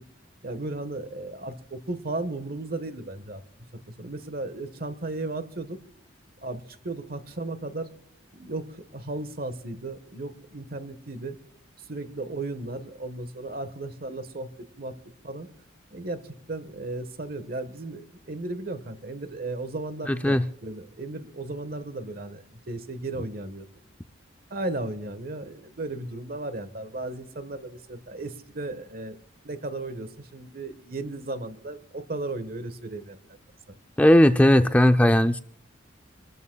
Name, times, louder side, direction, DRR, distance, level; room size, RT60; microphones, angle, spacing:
voice 1, 0.4-3.4 3.9-5.8 6.4-7.9 8.3-11.4 11.9-14.5 14.8-15.0 15.2-15.5 15.9-16.2 16.5-23.6 24.5-29.2 29.4-33.2 33.7-33.8, right 2 dB, 50° right, 1.3 m, -35 dB
voice 2, 20.0-20.4 34.0-35.4, left 1 dB, 10° left, 0.4 m, -17 dB
27.0 x 13.5 x 2.3 m
head